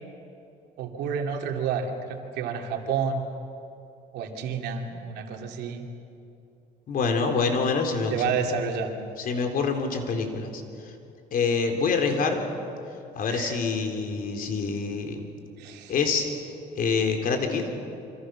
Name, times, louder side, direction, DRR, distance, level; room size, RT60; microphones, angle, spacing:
voice 1, 0.8-3.3 4.1-5.8 8.1-9.0 13.3-13.6 15.6-15.9, right 6 dB, 80° right, 3 dB, 2.9 m, -30 dB
voice 2, 6.9-8.3 9.2-10.9 11.3-12.5 13.2-15.3 15.9-16.3 16.8-17.7, left 4 dB, 55° left, 4 dB, 3.6 m, -26 dB
27.0 x 26.0 x 6.3 m, 2.7 s
cardioid pair, 110°, 17 cm